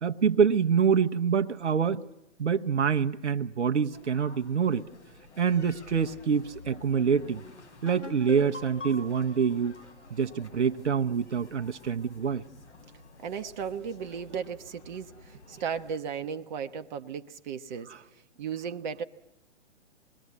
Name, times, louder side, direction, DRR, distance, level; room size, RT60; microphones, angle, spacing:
voice 1, 0.0-2.1 2.4-4.9 5.4-7.4 7.8-9.7 10.1-12.4 17.9-18.0, right 6 dB, 70° right, 0.9 m, -26 dB
sound 1, 3.9-15.9, left 3 dB, 70° left, 5.4 m, -51 dB
sound 2, 7.9-11.4, left 2 dB, 90° left, 5.8 m, -44 dB
voice 2, 13.2-17.9 18.4-19.0, right 7 dB, 40° right, 0.9 m, -35 dB
26.0 x 21.5 x 8.3 m
figure-of-eight pair, 125°, 36 cm